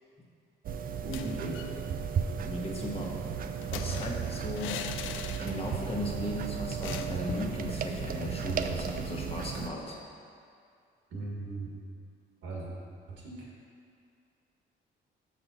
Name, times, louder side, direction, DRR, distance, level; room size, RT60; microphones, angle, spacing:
sound 1, 0.6-9.7, right 7 dB, 45° right, 0.4 m, -35 dB
sound 2, 1.0-1.8 2.1-2.2 2.4-5.9 6.2-6.3 6.8-7.6, left 9 dB, 80° left, 0.4 m, -41 dB
voice 1, 1.0-1.6 11.1-11.7 12.4-12.7 13.1-13.5, right 2 dB, 75° right, -3 dB, 1.7 m, -38 dB
voice 2, 2.4-3.1 3.7-4.9 5.4-10.0, left 1 dB, 30° left, -2 dB, 1.3 m, -37 dB
5.9 x 5.4 x 5.5 m, 2.3 s
cardioid pair, 90°, 20 cm